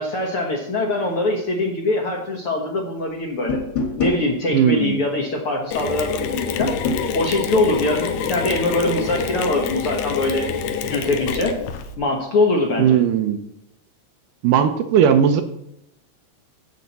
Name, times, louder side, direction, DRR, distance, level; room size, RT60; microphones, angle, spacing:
voice 1, 0.0-3.6 4.0-6.7 7.1-10.5 10.9-11.6 12.0-13.0, left 2 dB, 60° left, 0 dB, 1.5 m, -22 dB
sound 1, 3.5-4.2 6.6-7.1, left 3 dB, 40° left, 1.7 m, -24 dB
voice 2, 4.5-5.0 12.8-13.4 14.4-15.4, right 8 dB, 75° right, 8 dB, 2.0 m, -17 dB
Mechanisms, 5.7-11.9, left 6 dB, 75° left, 2.3 m, -26 dB
12.0 x 8.4 x 4.1 m, 0.78 s
omnidirectional pair, 4.1 m